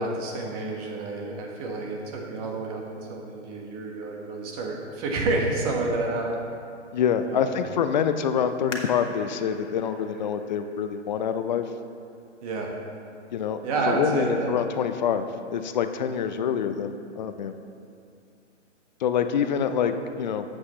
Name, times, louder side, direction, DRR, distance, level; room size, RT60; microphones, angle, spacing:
voice 1, 0.0-2.8 3.1-6.4 7.2-7.6 12.4-12.7 13.6-14.5, right 2 dB, 30° right, 0 dB, 1.5 m, -29 dB
voice 2, 6.9-11.7 13.3-13.6 13.9-17.5 19.0-20.4, left 7 dB, 40° left, 9 dB, 0.5 m, -26 dB
sound 1, 8.7-12.1 12.7-12.8 13.4-13.8 14.2-14.3, left 2 dB, 80° left, 1.6 m, -42 dB
12.5 x 8.1 x 3.2 m, 2.5 s
hypercardioid pair, 140°, 36 cm